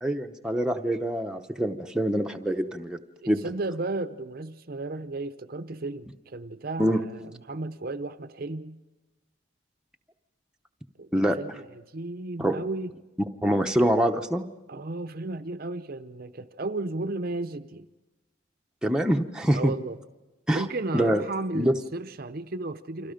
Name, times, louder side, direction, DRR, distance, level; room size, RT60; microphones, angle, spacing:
voice 1, 0.0-3.0 3.3-3.4 6.8-7.0 11.1-11.6 12.4-12.6 13.4-14.4 18.8-19.7 20.5-20.6 20.9-21.2 21.5-21.7, equal, 5° right, 3 dB, 0.8 m, -25 dB
voice 2, 3.2-8.8 11.0-11.1 11.3-12.9 14.7-17.9 19.5-20.0 20.5-23.1, right 2 dB, 45° right, 10 dB, 0.7 m, -34 dB
29.5 x 25.5 x 5.2 m, 1.1 s
head